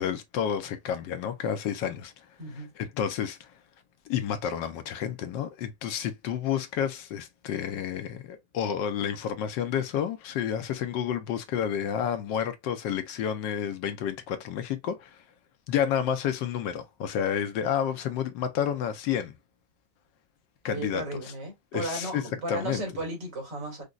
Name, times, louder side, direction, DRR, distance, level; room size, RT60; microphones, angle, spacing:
voice 1, 0.0-2.3 2.5-3.5 4.1-15.2 15.7-19.4 20.6-21.0 21.7-22.2 22.5-22.8, left 8 dB, 75° left, 1.3 m, -30 dB
voice 2, 2.4-2.7 20.7-23.8, right 1 dB, 65° right, 2.6 m, -35 dB
5.1 x 2.2 x 2.3 m
omnidirectional pair, 2.0 m